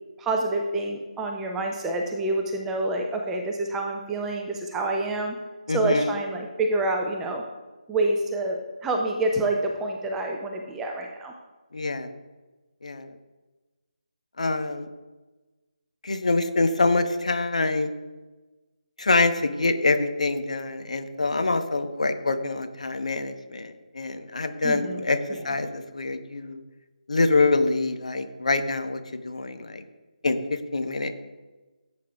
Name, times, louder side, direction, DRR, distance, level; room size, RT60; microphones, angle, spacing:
voice 1, 0.2-5.4 5.7-7.4 7.9-11.3 24.6-25.0, right 2 dB, 5° right, 2 dB, 0.5 m, -27 dB
voice 2, 5.7-6.1 11.7-12.1 12.8-13.1 14.4-14.9 16.0-17.9 19.0-26.6 27.1-29.8 30.2-31.2, left 3 dB, 55° left, 8 dB, 1.0 m, -25 dB
16.0 x 8.3 x 2.4 m, 1.2 s
figure-of-eight pair, 155°, 4 cm